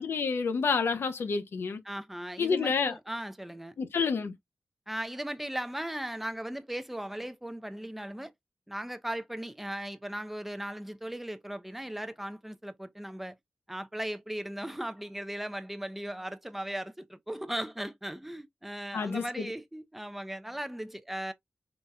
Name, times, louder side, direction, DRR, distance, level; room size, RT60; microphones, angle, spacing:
voice 1, 0.0-1.8 2.4-2.9 3.8-4.3 18.9-19.5, left 5 dB, 85° left, 0.7 m, -29 dB
voice 2, 1.8-3.8 4.9-8.3 8.7-13.3 13.7-21.3, right 1 dB, 5° right, 0.4 m, -37 dB
4.0 x 3.3 x 2.4 m
wide cardioid pair, 135°, 4 cm